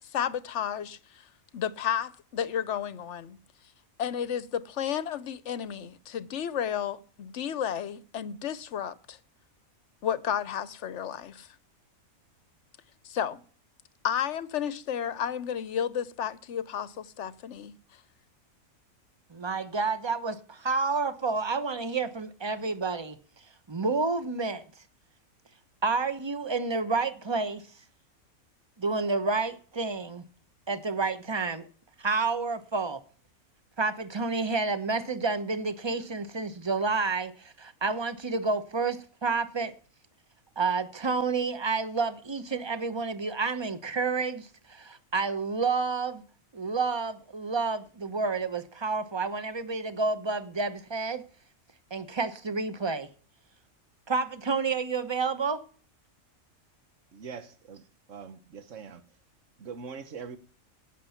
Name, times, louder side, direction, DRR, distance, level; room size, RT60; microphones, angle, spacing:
voice 1, 0.1-1.0 1.5-3.4 4.0-9.2 10.0-11.5 13.0-13.4 14.0-17.7, left 9 dB, 60° left, 1.0 m, -32 dB
voice 2, 19.3-23.2 23.7-24.6 25.8-27.6 28.8-30.2 30.7-31.7 32.0-33.0 33.8-39.7 40.6-46.2 46.5-51.2 51.9-53.1 54.1-55.6, right 4 dB, 20° right, 0.9 m, -29 dB
voice 3, 57.1-57.8 58.1-59.0 59.6-60.4, right 6 dB, 60° right, 1.6 m, -42 dB
17.0 x 6.9 x 5.7 m
omnidirectional pair, 1.5 m